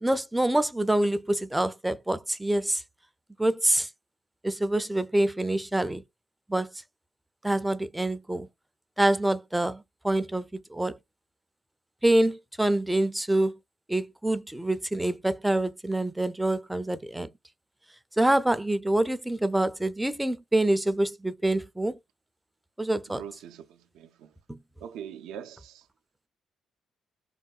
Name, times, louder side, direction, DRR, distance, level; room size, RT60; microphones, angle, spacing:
voice 1, 0.0-2.8 3.4-3.9 4.4-6.0 6.5-6.7 7.4-8.5 9.0-11.0 12.0-13.6 13.9-17.3 18.2-22.0 22.8-23.2 24.5-24.6, right 1 dB, 10° right, 0.4 m, -26 dB
voice 2, 23.1-23.6 23.9-24.3 24.8-25.8, right 9 dB, 90° right, 0.4 m, -42 dB
3.6 x 2.1 x 2.3 m
cardioid pair, 90°, 0 cm